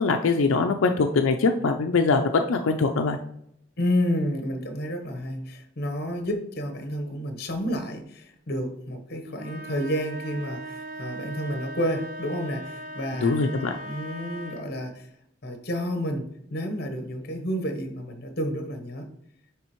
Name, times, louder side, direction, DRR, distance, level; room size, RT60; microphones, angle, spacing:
voice 1, 0.0-3.2 13.2-13.7, left 4 dB, 85° left, 0.5 m, -22 dB
voice 2, 3.8-13.3 13.6-15.1 15.4-19.1, equal, 50° left, 0.9 m, -30 dB
sound 1, 9.3-14.8, right 1 dB, 40° right, 0.6 m, -39 dB
9.8 x 3.4 x 3.0 m
head